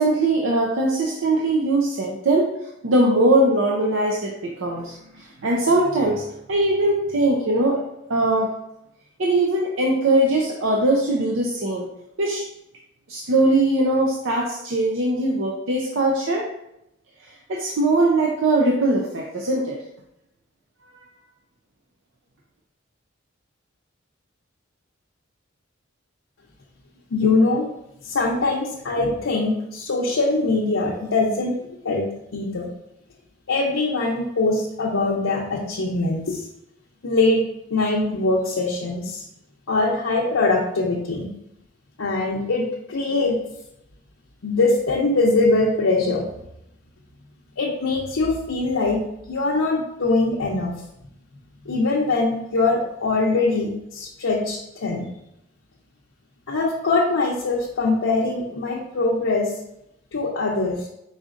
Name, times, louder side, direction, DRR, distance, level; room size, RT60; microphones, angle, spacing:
voice 1, 0.0-2.5 2.8-6.2 6.5-7.8 8.1-8.5 9.2-11.9 12.2-12.4 13.1-16.5 17.5-19.8 20.8-20.9, right 2 dB, 75° right, -1 dB, 0.6 m, -21 dB
voice 2, 27.1-27.7 28.0-31.6 31.8-32.7 33.5-36.5 37.0-37.4 37.7-39.2 39.7-41.3 42.0-43.4 44.4-46.2 47.6-49.0 49.3-50.7 51.7-55.1 56.5-59.5 60.1-60.9, left 3 dB, 90° left, -3 dB, 0.6 m, -22 dB
4.9 x 3.9 x 2.5 m, 0.83 s
head